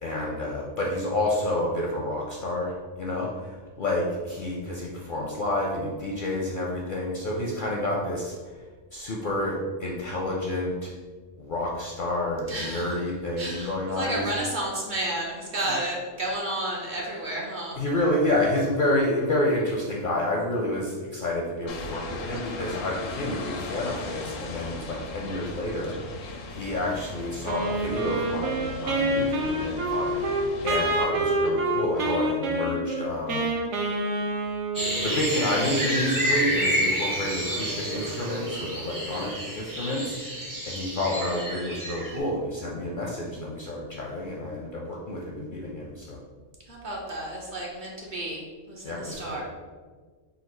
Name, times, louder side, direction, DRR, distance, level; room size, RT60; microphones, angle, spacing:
voice 1, 0.0-8.3 8.9-10.9 11.4-14.3 15.6-15.8 17.8-26.0 26.2-33.5 35.0-40.2 40.7-46.2 48.8-49.4, left 1 dB, 60° left, -2 dB, 0.5 m, -29 dB
voice 2, 12.5-13.0 13.4-17.8 46.7-49.4, right 1 dB, 45° right, -3 dB, 0.8 m, -32 dB
sound 1, 21.7-31.1, left 3 dB, 90° left, 1.0 m, -38 dB
Wind instrument woodwind instrument, 27.5-35.1, right 2 dB, 75° right, 1.0 m, -27 dB
sound 2, 34.7-42.2, equal, 30° right, 0.3 m, -29 dB
3.9 x 2.4 x 4.5 m, 1.5 s
omnidirectional pair, 1.3 m